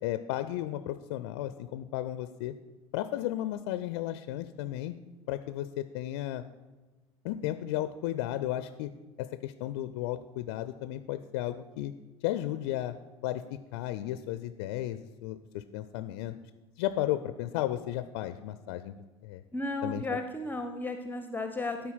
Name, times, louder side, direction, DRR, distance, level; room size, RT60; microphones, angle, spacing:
voice 1, 0.0-2.5 2.9-4.9 5.3-6.4 7.2-8.9 9.2-11.9 12.2-12.9 13.2-13.4 13.7-16.3 16.8-18.9 19.2-19.4 19.8-20.0, left 13 dB, 60° left, 12 dB, 0.4 m, -34 dB
voice 2, 19.5-21.9, left 2 dB, 10° left, 7 dB, 0.6 m, -34 dB
12.5 x 4.3 x 5.5 m, 1.2 s
figure-of-eight pair, 65°, 15 cm